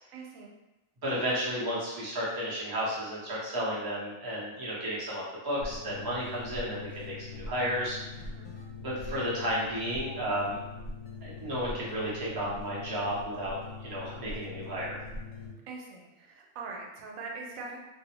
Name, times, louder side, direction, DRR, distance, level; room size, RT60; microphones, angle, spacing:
voice 1, 0.1-0.5 8.3-8.5 15.7-17.8, right 4 dB, 90° right, -1 dB, 1.0 m, -42 dB
voice 2, 1.0-8.0 8.8-10.6 11.2-15.0, equal, 25° right, -7 dB, 0.5 m, -33 dB
sound 1, 5.6-15.5, left 3 dB, 80° left, 1.0 m, -42 dB
2.5 x 2.0 x 2.9 m, 1.0 s
omnidirectional pair, 1.4 m